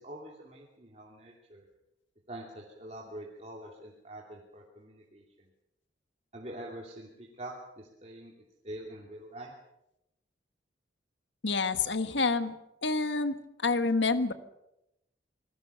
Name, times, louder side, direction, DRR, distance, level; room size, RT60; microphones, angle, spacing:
voice 1, 0.0-1.7 2.3-5.5 6.3-8.3 8.6-9.5, right 1 dB, 35° right, -2 dB, 2.8 m, -45 dB
voice 2, 11.4-12.5 12.8-13.4 13.6-14.3, left 3 dB, 70° left, 11 dB, 1.4 m, -27 dB
26.5 x 19.5 x 6.8 m, 0.88 s
head